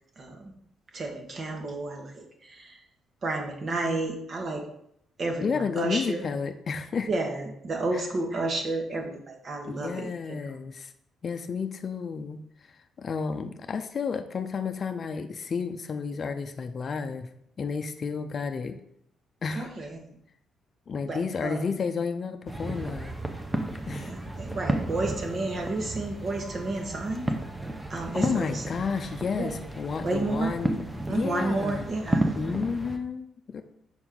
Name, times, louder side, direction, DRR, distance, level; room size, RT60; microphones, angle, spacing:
voice 1, 0.2-0.5 0.9-2.8 3.2-4.6 5.2-6.2 7.1-10.1 19.5-20.2 21.0-21.7 23.9-27.3 27.9-28.6 29.4-29.5 30.0-30.6 31.1-32.3 32.6-32.7, right 2 dB, 45° right, 3 dB, 1.3 m, -31 dB
voice 2, 5.4-7.1 7.9-8.0 9.7-10.9 11.2-12.4 13.0-17.3 17.6-18.8 19.4-19.7 20.9-23.1 23.9-24.1 28.1-30.8 31.1-31.9 32.3-33.6, left 5 dB, 45° left, 7 dB, 0.5 m, -31 dB
sound 1, 22.5-33.0, right 1 dB, 15° right, 0.8 m, -33 dB
6.1 x 4.4 x 3.8 m, 0.73 s
cardioid pair, 90°, 0 cm